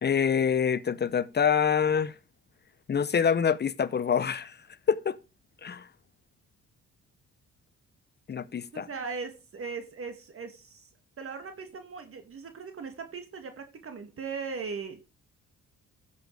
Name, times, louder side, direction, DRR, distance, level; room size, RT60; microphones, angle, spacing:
voice 1, 0.0-2.1 2.9-4.6 4.9-5.2 5.6-5.9 8.3-8.9, left 7 dB, 35° left, 0.8 m, -26 dB
voice 2, 8.7-10.9 11.2-15.0, right 5 dB, 45° right, 2.3 m, -39 dB
14.5 x 7.0 x 4.9 m
cardioid pair, 90°, 30 cm